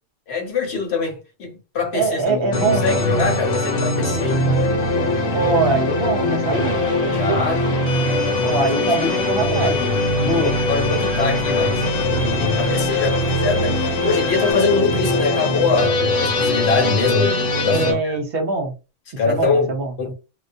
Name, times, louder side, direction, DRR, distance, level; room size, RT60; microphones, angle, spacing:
voice 1, 0.3-4.5 7.1-7.7 8.5-8.7 9.0-9.1 9.4-10.0 10.2-11.8 12.2-18.2 19.2-19.7 20.0-20.1, left 4 dB, 60° left, 1.0 m, -23 dB
voice 2, 1.9-3.0 5.3-6.8 8.4-9.8 10.2-10.6 17.7-18.7 19.3-20.1, right 3 dB, 60° right, 0.8 m, -22 dB
sound 1, 2.5-17.9, left 2 dB, 85° left, 1.0 m, -21 dB
sound 2, 6.5-14.5, right 2 dB, 15° right, 1.0 m, -34 dB
2.2 x 2.2 x 2.6 m
omnidirectional pair, 1.3 m